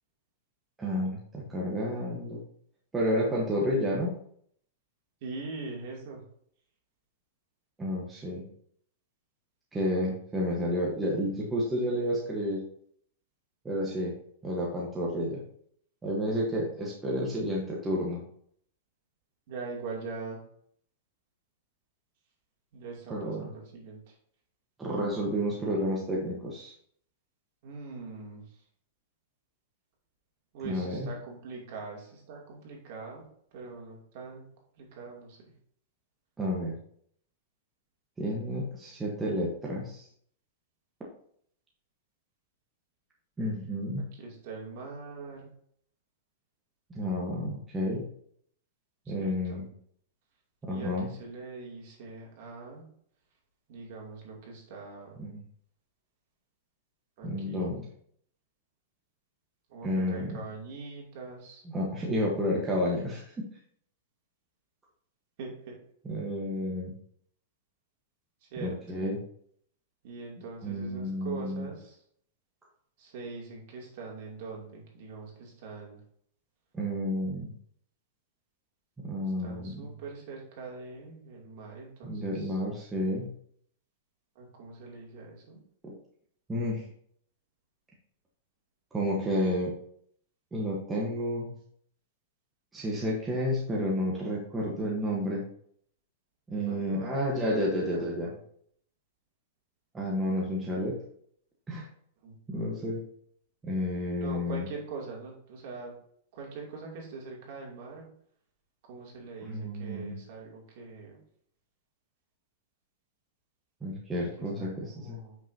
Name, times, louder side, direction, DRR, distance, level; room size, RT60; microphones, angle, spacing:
voice 1, 0.8-2.4 2.9-4.1 7.8-8.4 9.7-12.6 13.6-14.1 14.4-15.4 16.0-18.2 23.1-23.5 24.8-26.7 30.6-31.1 36.4-36.8 38.2-40.1 43.4-44.0 46.9-48.0 49.1-49.7 50.6-51.1 55.2-55.4 57.2-57.8 59.8-60.4 61.7-63.5 66.0-66.9 68.6-69.2 70.6-71.7 76.7-77.5 79.0-79.9 82.0-83.3 85.8-86.0 86.5-86.8 88.9-89.7 90.5-91.5 92.7-95.4 96.5-98.3 99.9-101.0 101.7-101.9 102.5-103.1 103.6-104.7 109.4-110.2 113.8-115.2, equal, 10° right, -4 dB, 1.1 m, -31 dB
voice 2, 5.2-6.2 19.5-20.4 22.7-24.0 27.6-28.4 30.5-33.2 33.5-34.5 34.8-35.4 44.1-45.5 49.0-49.7 50.7-52.8 53.7-55.2 57.2-57.7 59.7-61.6 65.4-65.8 68.5-68.8 70.0-72.0 73.0-76.0 79.2-82.6 84.4-85.6 96.7-98.4 102.2-102.7 104.2-105.9 106.3-108.1 108.9-111.2 114.4-115.4, right 4 dB, 50° right, -1 dB, 2.6 m, -42 dB
8.2 x 5.8 x 2.7 m, 0.64 s
supercardioid pair, 160°, 0 cm